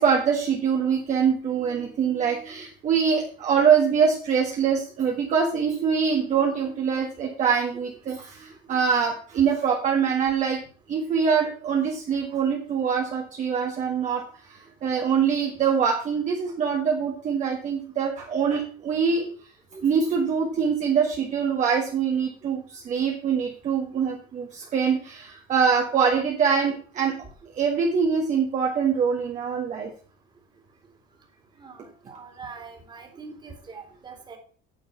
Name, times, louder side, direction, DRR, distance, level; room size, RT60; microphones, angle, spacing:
voice 1, 0.0-10.6 10.9-19.3 19.8-27.1 27.5-29.9, right 6 dB, 35° right, 0 dB, 1.7 m, -24 dB
voice 2, 31.6-34.4, right 4 dB, 20° right, 3 dB, 2.7 m, -43 dB
9.5 x 6.7 x 5.8 m, 0.42 s
cardioid pair, 145°, 20 cm